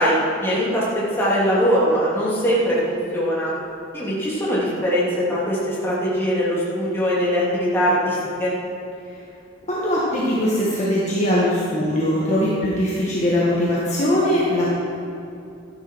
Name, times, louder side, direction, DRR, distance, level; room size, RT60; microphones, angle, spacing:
voice 1, 0.0-3.5 3.9-8.5, equal, 10° left, -8 dB, 3.0 m, -21 dB
voice 2, 9.7-14.7, left 1 dB, 35° left, -7 dB, 1.7 m, -21 dB
14.0 x 11.0 x 4.7 m, 2.7 s
head